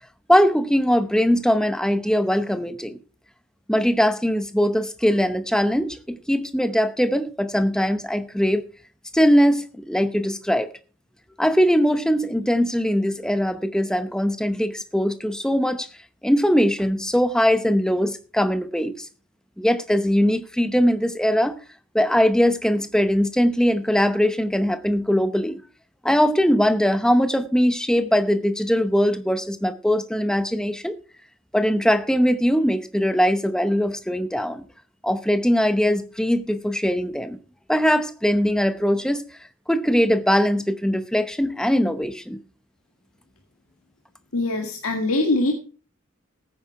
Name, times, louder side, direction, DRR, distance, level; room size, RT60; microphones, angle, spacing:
voice 1, 0.3-3.0 3.7-8.6 9.1-10.7 11.4-15.9 16.2-19.1 19.6-21.6 21.9-25.6 26.0-31.0 31.5-34.6 35.0-37.4 37.7-39.2 39.7-42.4, equal, 5° left, 0.7 m, -21 dB
voice 2, 44.3-45.5, left 2 dB, 85° left, 1.8 m, -22 dB
14.5 x 9.5 x 4.6 m
head